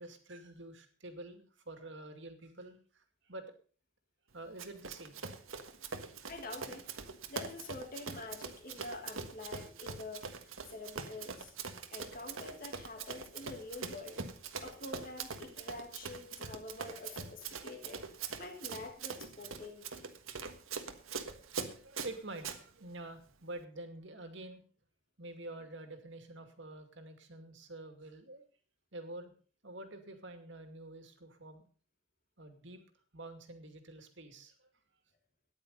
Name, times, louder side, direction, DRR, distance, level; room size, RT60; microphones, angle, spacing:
voice 1, 0.0-3.5 4.3-6.2 11.8-12.2 21.7-24.6 25.2-28.4 28.9-29.3 29.6-31.6 32.4-32.8 33.1-34.7, right 2 dB, 60° right, 7 dB, 2.4 m, -48 dB
Run, 4.6-22.6, right 5 dB, 85° right, 1.5 m, -43 dB
voice 2, 6.2-6.9 7.3-11.5 11.9-14.2 14.6-20.1, left 3 dB, 45° left, 3 dB, 1.8 m, -47 dB
13.5 x 10.5 x 5.3 m, 0.40 s
head